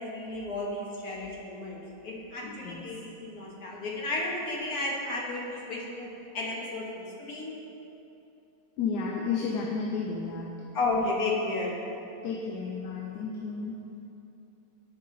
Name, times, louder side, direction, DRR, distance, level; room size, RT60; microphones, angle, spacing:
voice 1, 0.0-6.1 6.3-7.5 10.7-11.7, left 2 dB, 60° left, -3 dB, 1.6 m, -33 dB
voice 2, 2.4-2.9 8.8-10.5 12.2-13.8, left 5 dB, 75° left, 0 dB, 1.1 m, -32 dB
9.2 x 5.4 x 3.8 m, 2.9 s
omnidirectional pair, 1.9 m